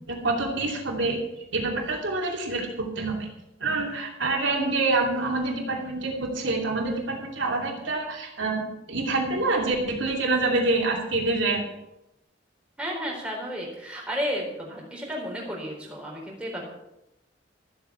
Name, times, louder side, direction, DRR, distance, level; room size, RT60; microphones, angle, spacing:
voice 1, 0.1-1.2 1.5-3.3 3.6-11.7, right 3 dB, 80° right, -1 dB, 2.8 m, -26 dB
voice 2, 12.8-16.7, equal, 5° right, -3 dB, 4.0 m, -32 dB
13.5 x 8.1 x 7.0 m, 0.89 s
head